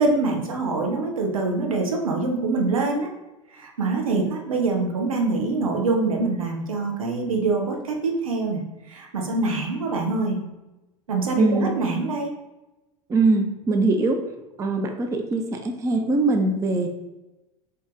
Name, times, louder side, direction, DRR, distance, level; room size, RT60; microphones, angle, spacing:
voice 1, 0.0-3.1 3.5-8.6 8.9-10.4 11.1-12.3, right 3 dB, 75° right, 1 dB, 0.8 m, -24 dB
voice 2, 11.4-11.7 13.1-14.2 14.6-16.9, right 3 dB, 15° right, 4 dB, 0.4 m, -22 dB
3.9 x 2.8 x 3.5 m, 1.0 s
figure-of-eight pair, 80°, 18 cm